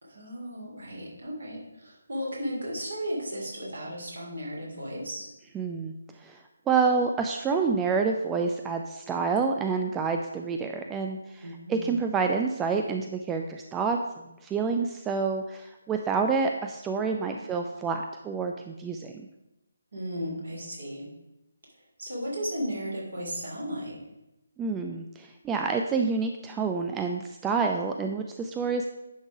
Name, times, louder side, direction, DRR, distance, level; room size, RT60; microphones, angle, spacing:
voice 1, 0.0-5.3 11.4-11.9 17.1-17.4 19.9-21.1 21.8-24.0, equal, 60° right, -3 dB, 2.8 m, -35 dB
voice 2, 5.6-5.9 6.2-6.4 6.7-11.4 11.7-14.0 14.4-19.1 24.6-28.9, right 5 dB, 10° right, 4 dB, 0.3 m, -28 dB
10.0 x 3.7 x 4.8 m, 0.93 s
figure-of-eight pair, 145°, 0 cm